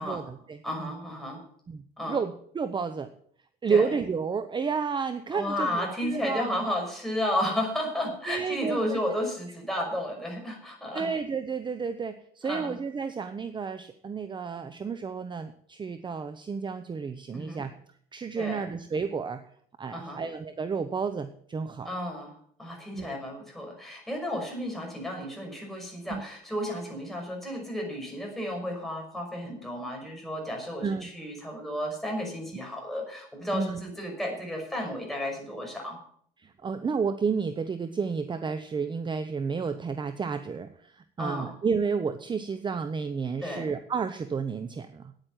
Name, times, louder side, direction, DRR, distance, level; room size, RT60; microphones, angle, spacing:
voice 1, 0.0-0.9 1.7-3.1 3.6-6.7 8.3-9.0 10.9-17.7 18.1-19.4 19.8-21.9 22.9-23.2 26.1-26.2 30.8-31.1 33.5-33.8 36.4-45.1, right 5 dB, 25° right, 10 dB, 0.8 m, -31 dB
voice 2, 0.6-1.4 2.0-2.2 3.7-3.9 5.3-11.1 12.4-12.8 17.3-17.6 18.4-18.6 19.9-20.2 21.8-36.0 41.2-41.5 43.4-43.7, left 1 dB, ahead, 0 dB, 5.8 m, -33 dB
9.7 x 9.1 x 9.0 m, 0.63 s
cardioid pair, 110°, 17 cm